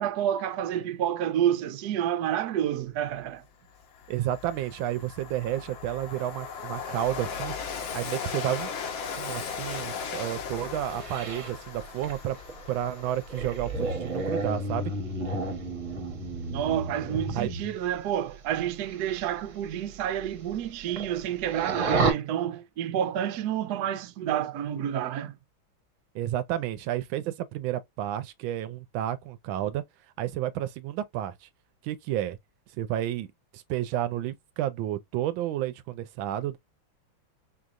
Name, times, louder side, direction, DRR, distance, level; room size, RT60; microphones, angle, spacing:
voice 1, 0.0-3.4 16.5-25.3, right 10 dB, 65° right, 1.1 m, -29 dB
Train, 3.2-3.3 3.7-14.1, left 6 dB, 75° left, 1.6 m, -37 dB
voice 2, 4.1-7.5 7.9-8.7 9.2-12.4 12.7-14.9 17.3-17.5 26.1-29.8 30.2-31.5 31.8-32.4 32.8-33.3 33.5-36.6, right 12 dB, 85° right, 1.4 m, -31 dB
sound 1, 10.9-17.7 18.8-19.2 19.5-19.6 20.2-20.3 20.5-21.2 21.5-22.1, right 2 dB, 45° right, 1.3 m, -31 dB
4.9 x 2.9 x 2.4 m
omnidirectional pair, 2.1 m